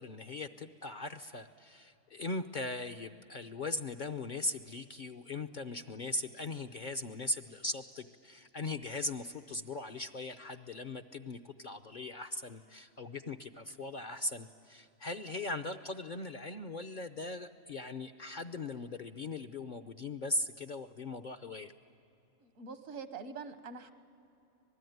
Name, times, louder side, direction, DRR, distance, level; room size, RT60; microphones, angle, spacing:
voice 1, 0.0-21.7, left 2 dB, 45° left, 7 dB, 0.7 m, -39 dB
voice 2, 22.4-23.9, right 5 dB, 75° right, 9 dB, 1.7 m, -44 dB
26.0 x 19.5 x 9.3 m, 2.9 s
omnidirectional pair, 1.4 m